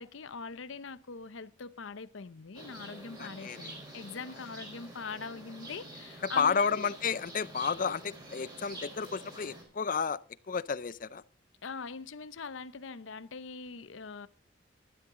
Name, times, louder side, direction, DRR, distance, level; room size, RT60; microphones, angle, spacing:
voice 1, 0.0-6.9 11.6-14.3, left 4 dB, 85° left, 0.7 m, -42 dB
sound 1, 2.5-9.6, right 1 dB, 20° right, 4.7 m, -47 dB
voice 2, 3.2-3.7 6.4-10.2 10.5-11.2, left 6 dB, 45° left, 0.5 m, -31 dB
13.0 x 11.5 x 3.7 m
head